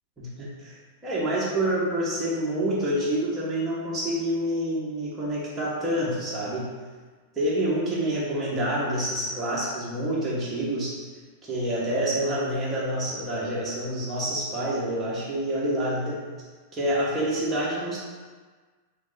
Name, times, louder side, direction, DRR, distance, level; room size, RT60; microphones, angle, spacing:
voice 1, 0.2-0.7 1.0-6.7 7.4-10.9 11.4-16.2 16.7-18.0, right 1 dB, 10° right, -7 dB, 0.8 m, -27 dB
3.1 x 2.5 x 3.8 m, 1.4 s
supercardioid pair, 170°, 0 cm